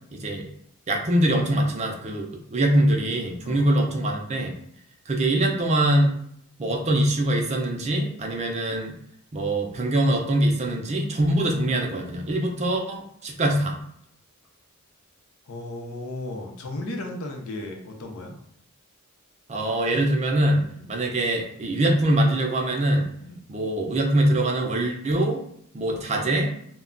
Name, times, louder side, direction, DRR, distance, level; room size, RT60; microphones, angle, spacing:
voice 1, 0.1-0.4 0.9-4.5 5.1-6.2 6.6-8.9 9.3-13.8 19.5-23.1 23.5-25.4 25.7-26.5, right 1 dB, 30° right, 1 dB, 0.5 m, -23 dB
voice 2, 15.5-18.4 20.8-20.9 23.2-23.4, left 1 dB, 85° left, 2 dB, 0.6 m, -35 dB
2.2 x 2.1 x 3.7 m, 0.70 s
head